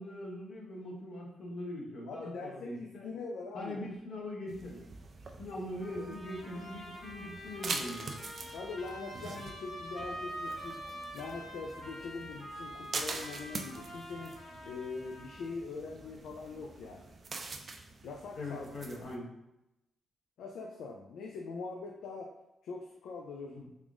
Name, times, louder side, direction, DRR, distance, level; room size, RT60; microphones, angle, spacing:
voice 1, 0.0-3.1 3.5-4.8 5.4-8.2 18.4-19.3 23.5-23.7, left 1 dB, 65° left, -2 dB, 0.9 m, -41 dB
voice 2, 2.1-3.9 8.5-10.8 11.1-14.3 14.6-17.2 18.0-18.7 20.4-22.3 22.6-23.6, left 4 dB, 90° left, 0 dB, 0.4 m, -42 dB
sound 1, 4.5-19.2, right 3 dB, 45° right, 0.4 m, -45 dB
Trumpet, 5.8-15.5, equal, 40° left, 1.3 m, -46 dB
3.6 x 2.5 x 3.5 m, 0.90 s
cardioid pair, 120°, 0 cm